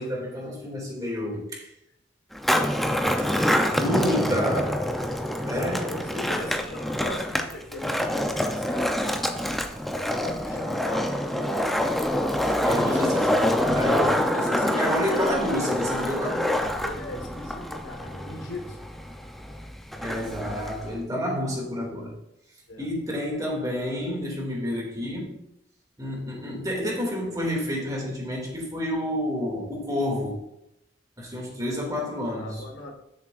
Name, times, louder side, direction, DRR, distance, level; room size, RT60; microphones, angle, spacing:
voice 1, 0.0-1.7 3.7-5.0 5.4-5.9 12.6-16.5 20.0-22.1 22.8-25.4 26.0-30.4 31.2-32.6, equal, 20° right, -2 dB, 2.4 m, -29 dB
Skateboard, 2.3-21.0, left 1 dB, ahead, 0.6 m, -26 dB
voice 2, 5.4-9.4 9.9-11.7 12.7-15.0 15.9-18.8 22.7-22.9 32.4-32.9, left 1 dB, 85° left, 2 dB, 1.7 m, -39 dB
12.0 x 7.2 x 2.5 m, 0.83 s
head